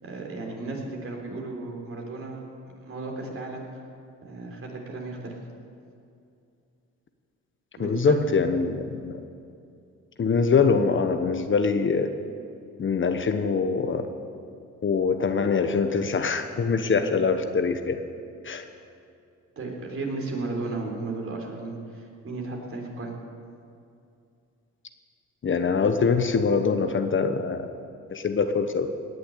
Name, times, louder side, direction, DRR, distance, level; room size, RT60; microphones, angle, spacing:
voice 1, 0.0-2.4 2.8-3.6 4.3-5.4 7.8-8.2 19.6-23.1, right 3 dB, 45° right, 0 dB, 3.8 m, -34 dB
voice 2, 7.8-9.1 10.2-12.1 12.8-14.1 14.8-18.0 18.4-18.6 25.4-27.7 28.1-28.9, left 5 dB, 40° left, 7 dB, 1.1 m, -23 dB
18.0 x 6.9 x 10.0 m, 2.5 s
cardioid pair, 90°, 30 cm